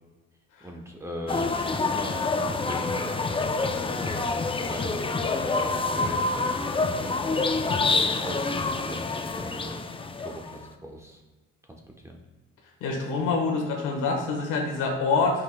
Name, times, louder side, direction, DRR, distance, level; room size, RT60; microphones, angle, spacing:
voice 1, 0.6-4.3 4.7-7.7 8.2-9.8 10.2-11.2 11.6-12.2, equal, 10° right, 1 dB, 1.0 m, -40 dB
sound 1, 1.3-10.7, left 3 dB, 20° left, 0.4 m, -27 dB
voice 2, 12.8-15.4, left 4 dB, 85° left, 1 dB, 1.4 m, -26 dB
9.9 x 5.7 x 2.2 m, 1.3 s
cardioid pair, 90°, 30 cm